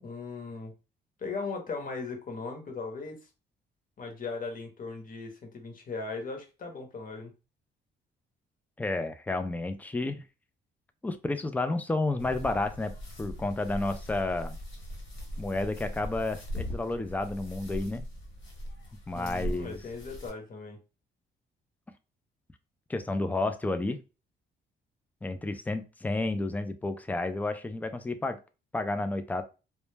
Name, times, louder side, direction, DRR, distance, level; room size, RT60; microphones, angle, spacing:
voice 1, 0.0-0.7 1.2-3.2 4.0-7.3 19.1-20.8, left 4 dB, 45° left, 3 dB, 0.9 m, -38 dB
voice 2, 8.8-10.2 11.0-12.9 13.2-14.6 15.4-18.0 19.1-19.8 22.9-24.0 25.2-28.4 28.7-29.4, left 2 dB, 10° left, 9 dB, 0.3 m, -31 dB
sound 1, 12.2-20.3, equal, 75° left, 1.2 m, -40 dB
2.1 x 2.0 x 3.2 m, 0.30 s
cardioid pair, 90°, 20 cm